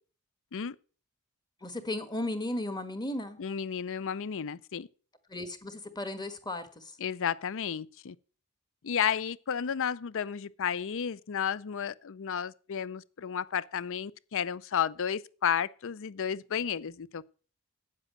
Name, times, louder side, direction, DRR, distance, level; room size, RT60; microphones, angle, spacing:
voice 1, 1.6-3.4 5.3-6.9, left 1 dB, 20° left, 1.4 m, -35 dB
voice 2, 3.4-4.9 7.0-8.2 8.8-17.3, left 8 dB, 65° left, 0.5 m, -32 dB
8.9 x 7.6 x 7.5 m
head